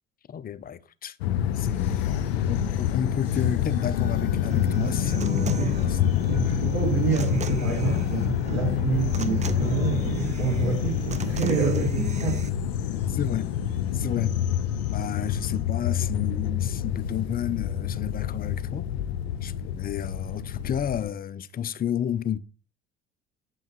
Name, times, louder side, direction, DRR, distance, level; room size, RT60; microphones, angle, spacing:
voice 1, 0.3-1.2 1.6-5.6 13.1-13.5 13.9-14.3 14.9-18.9 19.4-22.4, left 9 dB, 30° left, 0.5 m, -31 dB
sound 1, 1.2-21.1, left 10 dB, 75° left, 0.5 m, -27 dB
sound 2, 1.5-15.6, left 7 dB, 50° left, 1.5 m, -47 dB
Human voice / Acoustic guitar, 4.5-12.5, right 7 dB, 20° right, 0.5 m, -37 dB
voice 2, 6.3-12.5, right 6 dB, 55° right, 3.1 m, -28 dB
7.7 x 5.4 x 3.1 m
hypercardioid pair, 60°, 32 cm